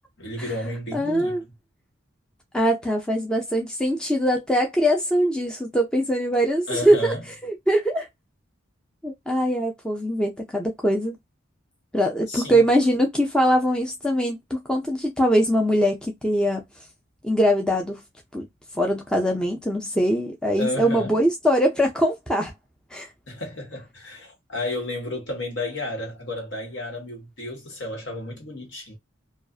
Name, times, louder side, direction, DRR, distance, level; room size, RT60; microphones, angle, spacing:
voice 1, 0.2-1.4 6.7-7.2 12.3-12.6 20.6-21.2 23.3-29.0, left 1 dB, 60° left, 1.3 m, -32 dB
voice 2, 0.9-1.4 2.5-7.1 7.4-8.1 9.0-11.1 11.9-16.7 17.2-18.0 18.3-18.5 18.7-22.5 22.9-23.1, equal, 5° left, 0.4 m, -22 dB
2.5 x 2.3 x 2.3 m
head